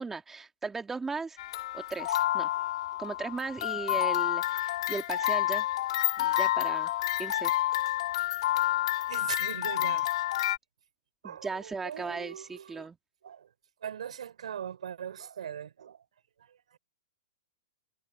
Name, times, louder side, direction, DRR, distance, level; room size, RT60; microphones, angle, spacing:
voice 1, 0.0-1.4 1.7-2.5 3.0-5.7 6.2-6.9 7.2-7.5 11.2-13.0, right 4 dB, 10° right, 2.9 m, -37 dB
sound 1, 1.4-10.6, left 14 dB, 60° left, 3.3 m, -29 dB
voice 2, 9.1-10.1 11.2-12.9 13.2-13.5 13.8-16.1 16.4-16.8, right 9 dB, 85° right, 5.5 m, -41 dB
hypercardioid pair, 145°, 3 cm